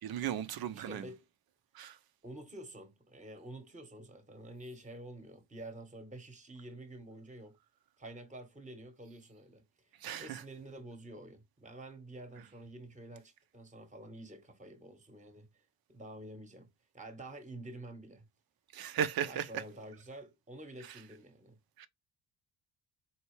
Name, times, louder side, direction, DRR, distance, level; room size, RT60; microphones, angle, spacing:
voice 1, 0.0-1.0 1.7-2.0 10.0-10.4 18.7-19.6 21.8-21.9, right 9 dB, 50° right, 0.7 m, -36 dB
voice 2, 0.7-1.3 2.2-7.6 8.0-15.6 15.9-16.7 16.9-18.3 19.2-21.6, right 1 dB, 15° right, 1.1 m, -49 dB
4.4 x 2.8 x 3.1 m
hypercardioid pair, 50°, 47 cm